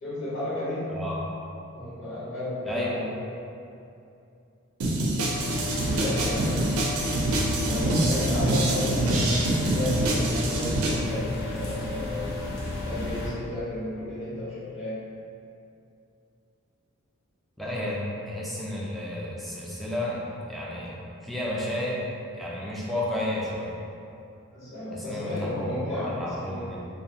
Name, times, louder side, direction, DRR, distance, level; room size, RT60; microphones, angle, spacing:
voice 1, 0.0-1.1 1.7-3.2 6.0-6.9 7.6-12.3 12.8-15.0 24.5-26.8, left 1 dB, 60° left, -12 dB, 1.0 m, -33 dB
sound 1, 4.8-11.0, right 1 dB, 65° right, 0.4 m, -25 dB
sound 2, 5.3-13.3, left 1 dB, 45° left, 0.6 m, -33 dB
voice 2, 17.6-22.0 22.4-23.7 24.9-26.8, left 1 dB, ahead, -6 dB, 0.3 m, -32 dB
2.6 x 2.3 x 2.7 m, 2.6 s
head